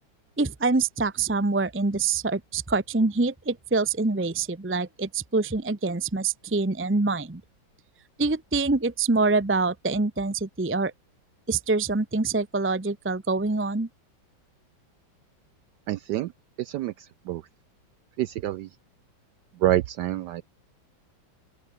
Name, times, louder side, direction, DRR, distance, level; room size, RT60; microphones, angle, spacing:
voice 1, 0.4-7.4 8.2-10.9 11.5-13.9, right 3 dB, 15° right, 0.5 m, -25 dB
voice 2, 15.9-16.3 16.6-16.9 17.3-17.4 18.2-18.7 19.6-20.4, right 14 dB, 75° right, 1.0 m, -26 dB
open air
omnidirectional pair, 2.2 m